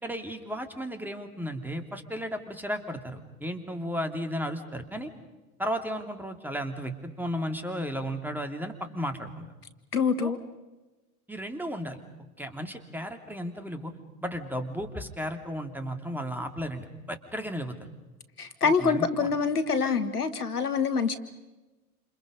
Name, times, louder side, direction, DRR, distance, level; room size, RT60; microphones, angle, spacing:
voice 1, 0.0-5.1 5.6-9.5 10.2-10.3 11.3-12.0 12.4-13.9 14.2-17.7 18.6-19.3, equal, 5° right, 6 dB, 2.9 m, -34 dB
voice 2, 9.9-10.4 18.4-21.1, left 5 dB, 85° left, 11 dB, 1.7 m, -25 dB
29.0 x 28.0 x 5.4 m, 1.1 s
figure-of-eight pair, 85°, 45 cm